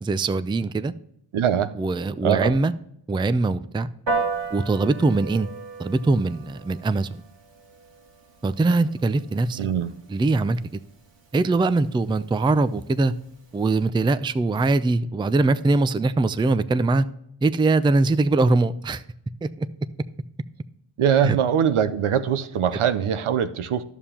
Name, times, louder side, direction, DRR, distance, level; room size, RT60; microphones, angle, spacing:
voice 1, 0.0-0.9 1.8-2.7 3.1-3.9 4.5-5.5 5.8-7.2 8.4-9.6 10.1-10.8 11.3-13.1 13.5-17.1 17.4-19.0 19.4-19.7 21.2-21.4, right 3 dB, 10° right, 14 dB, 0.4 m, -22 dB
voice 2, 1.3-1.7 2.2-2.5 9.6-9.9 21.0-23.8, right 8 dB, 75° right, 12 dB, 0.8 m, -22 dB
Piano, 4.1-13.8, right 4 dB, 60° right, 1.9 m, -36 dB
11.0 x 7.1 x 2.9 m, 0.74 s
cardioid pair, 50°, 50 cm